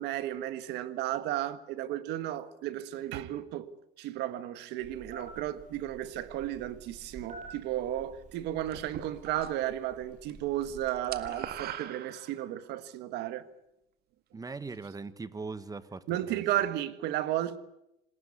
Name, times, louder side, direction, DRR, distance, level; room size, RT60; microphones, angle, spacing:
voice 1, 0.0-3.7 4.0-13.4 16.1-17.6, right 13 dB, 90° right, 1.6 m, -34 dB
Telephone, 4.8-11.7, right 3 dB, 45° right, 7.8 m, -48 dB
sound 1, 8.7-9.7 10.0-10.4 10.6-12.7, right 10 dB, 70° right, 1.9 m, -41 dB
voice 2, 14.3-16.4, right 4 dB, 20° right, 1.5 m, -40 dB
27.5 x 20.0 x 8.5 m
cardioid pair, 110°, 17 cm